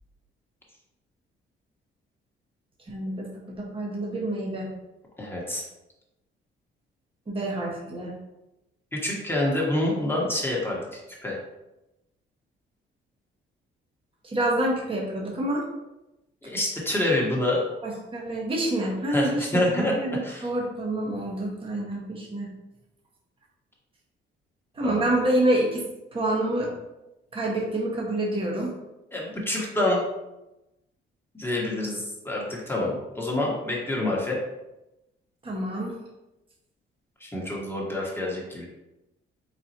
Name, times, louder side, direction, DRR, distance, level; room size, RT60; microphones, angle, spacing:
voice 1, 2.9-3.3 3.6-4.7 7.3-8.1 14.2-15.6 17.8-22.5 24.7-25.8 26.1-26.7 27.3-28.7 35.4-36.0, right 1 dB, 25° right, -3 dB, 1.2 m, -27 dB
voice 2, 5.2-5.6 8.9-11.4 16.4-17.6 19.1-19.9 20.2-20.5 24.8-25.0 29.1-30.0 31.3-34.4 37.2-38.7, left 1 dB, 10° left, -4 dB, 1.3 m, -27 dB
4.3 x 4.0 x 2.8 m, 0.95 s
cardioid pair, 90°, 20 cm